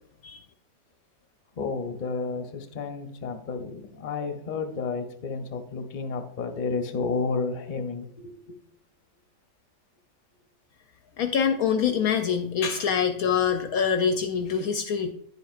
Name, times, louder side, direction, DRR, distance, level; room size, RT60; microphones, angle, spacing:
voice 1, 1.6-8.6, left 4 dB, 40° left, 5 dB, 0.7 m, -31 dB
voice 2, 11.2-15.1, left 7 dB, 70° left, 7 dB, 1.0 m, -25 dB
9.9 x 7.7 x 2.4 m, 0.69 s
omnidirectional pair, 1.8 m